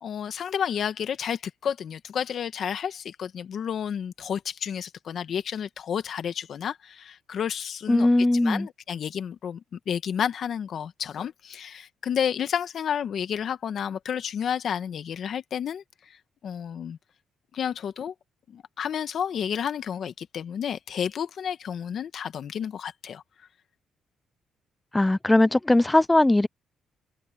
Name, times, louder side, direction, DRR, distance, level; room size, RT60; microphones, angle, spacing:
voice 1, 0.0-8.1 8.4-17.0 17.5-18.1 18.5-23.2, left 8 dB, 60° left, 1.4 m, -31 dB
voice 2, 7.9-8.7 24.9-26.5, left 2 dB, 10° left, 0.4 m, -20 dB
cardioid pair, 90°, 0 cm